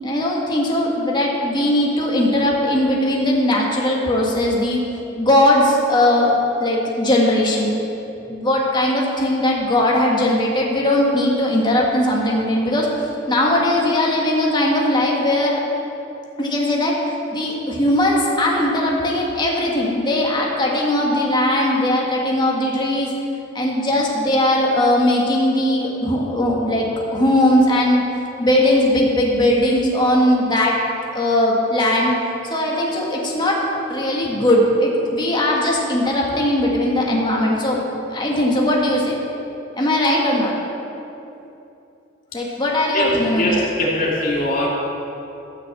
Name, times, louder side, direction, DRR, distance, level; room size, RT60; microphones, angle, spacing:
voice 1, 0.0-4.8 5.2-7.7 8.3-12.9 13.3-15.6 16.4-17.0 17.3-23.1 23.5-28.0 28.4-30.8 31.1-32.1 32.4-33.6 33.9-37.8 38.1-39.2 39.8-40.6 42.3-43.6, left 1 dB, 25° left, -2 dB, 1.8 m, -19 dB
voice 2, 43.3-44.7, left 1 dB, 50° left, -4 dB, 2.7 m, -21 dB
14.5 x 6.0 x 7.6 m, 2.9 s
head